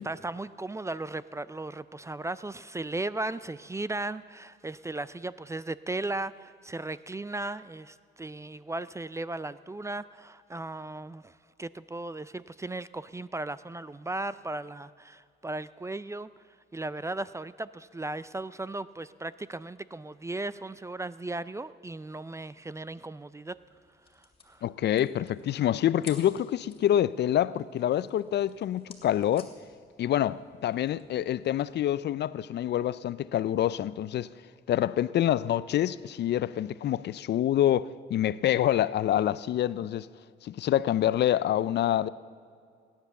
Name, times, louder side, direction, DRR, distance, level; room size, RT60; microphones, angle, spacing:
voice 1, 0.0-16.3 16.7-23.6 24.1-24.6, right 2 dB, 15° right, 0.4 m, -36 dB
sound 1, 23.4-31.9, left 4 dB, 30° left, 2.8 m, -54 dB
voice 2, 24.6-29.5 30.0-34.3 34.7-40.1 40.4-42.1, left 11 dB, 60° left, 0.4 m, -26 dB
17.0 x 10.5 x 7.0 m
cardioid pair, 90°, 20 cm